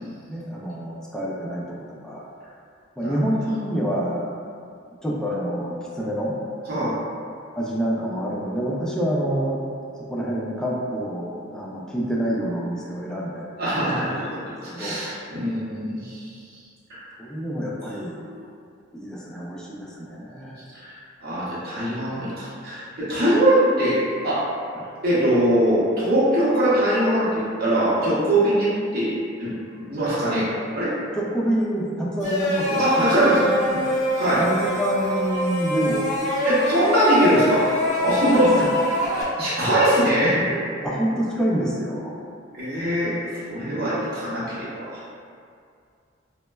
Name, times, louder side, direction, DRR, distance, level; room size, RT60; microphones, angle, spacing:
voice 1, 0.3-2.3 3.0-4.3 5.0-6.3 7.5-9.6 10.0-13.5 14.7-15.2 17.2-18.3 18.9-20.6 24.7-24.9 31.2-33.9 34.4-36.1 38.3-38.7 40.8-42.2, equal, 5° left, -5 dB, 0.3 m, -27 dB
voice 2, 13.6-16.3 16.9-17.0 20.7-24.0 24.2-24.4 25.0-29.5 29.8-30.9 32.8-33.5 34.2-34.4 36.4-37.7 38.0-38.5 39.4-40.6 42.5-45.0, right 1 dB, 50° right, -9 dB, 0.8 m, -22 dB
sound 1, 32.2-39.2, left 1 dB, 35° left, 0.7 m, -25 dB
4.1 x 2.1 x 2.2 m, 2.3 s
head